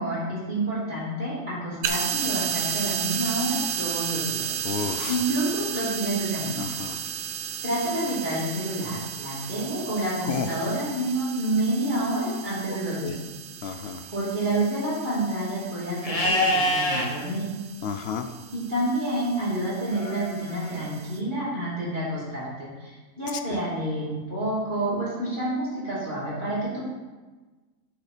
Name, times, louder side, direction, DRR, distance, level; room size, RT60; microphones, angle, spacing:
voice 1, 0.0-4.5 5.1-6.6 7.6-13.1 14.1-17.4 18.5-26.9, right 1 dB, 30° right, -8 dB, 3.2 m, -28 dB
sound 1, 1.8-21.2, right 8 dB, 75° right, 1.1 m, -34 dB
voice 2, 4.6-5.2 6.6-7.0 10.3-10.5 12.7-12.8 13.0-13.2 13.6-14.0 17.8-18.3 23.5-23.6, left 7 dB, 65° left, 8 dB, 0.6 m, -31 dB
Livestock farm animals working animals, 16.0-17.1 19.9-20.9, left 1 dB, 25° left, 1.2 m, -25 dB
9.1 x 5.0 x 5.0 m, 1.3 s
omnidirectional pair, 1.5 m